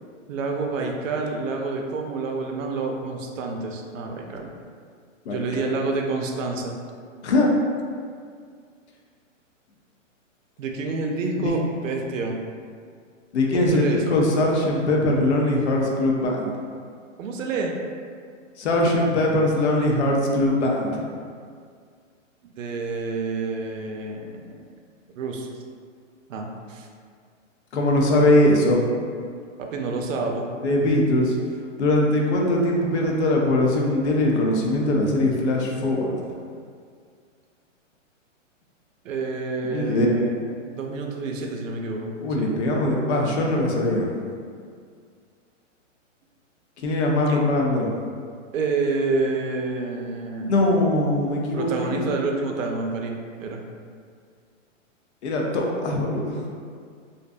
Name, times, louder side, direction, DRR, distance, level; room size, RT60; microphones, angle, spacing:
voice 1, 0.3-4.5 5.3-6.8 10.6-12.3 13.5-14.2 17.2-17.7 22.6-24.6 25.2-25.5 26.3-26.9 29.6-30.5 39.0-40.4 40.7-42.5 47.3-47.4 48.5-50.6 51.5-53.6, right 3 dB, 80° right, 1 dB, 0.5 m, -28 dB
voice 2, 13.3-16.5 18.6-21.0 27.7-28.8 30.6-31.4 31.8-36.2 39.7-40.2 42.2-44.1 46.8-47.9 50.5-52.2 55.2-56.4, left 1 dB, 60° left, -1 dB, 0.5 m, -21 dB
2.5 x 2.2 x 2.4 m, 2.1 s
hypercardioid pair, 160°, 38 cm